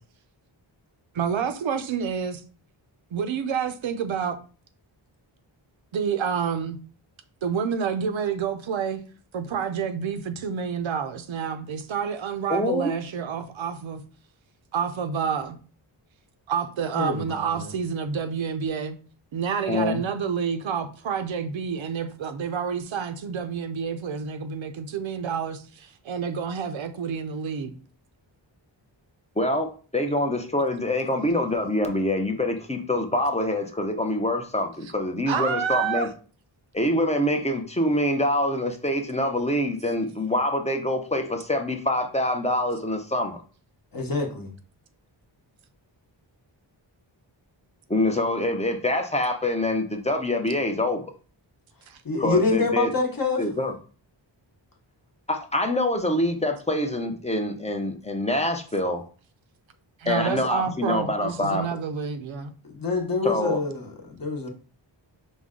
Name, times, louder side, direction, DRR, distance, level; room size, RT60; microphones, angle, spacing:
voice 1, 1.1-2.4 3.1-4.4 5.9-6.8 7.4-9.0 9.3-14.0 14.7-15.6 16.5-18.9 19.3-27.8 35.3-36.1 51.9-52.0 60.0-62.5, right 7 dB, 80° right, 0.6 m, -28 dB
voice 2, 12.5-12.9 19.7-20.0 29.4-36.1 36.7-43.4 47.9-51.1 52.2-52.9 53.4-53.7 55.3-59.0 60.1-61.7 63.2-63.6, left 1 dB, 15° left, 0.5 m, -25 dB
voice 3, 16.9-17.7 43.9-44.5 52.0-53.5 62.6-64.5, left 3 dB, 45° left, 0.9 m, -26 dB
5.1 x 2.1 x 3.6 m
wide cardioid pair, 120°, 46 cm